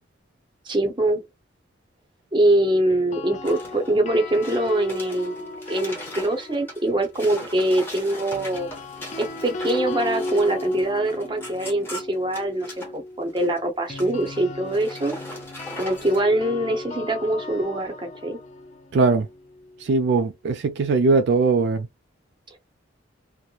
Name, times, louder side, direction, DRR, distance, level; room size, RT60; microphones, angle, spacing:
voice 1, 0.6-1.2 2.3-8.7 9.2-15.2 15.8-18.4, right 1 dB, 25° right, 0.6 m, -23 dB
sound 1, 2.9-7.1 8.3-20.2, left 2 dB, 35° left, 0.4 m, -36 dB
sound 2, 3.4-3.9 4.3-12.9 13.3-13.6 13.9-14.4 14.7-16.2, left 1 dB, 10° left, 0.8 m, -39 dB
voice 2, 18.9-19.3 19.8-21.9, right 4 dB, 55° right, 0.3 m, -20 dB
2.9 x 2.0 x 2.3 m
head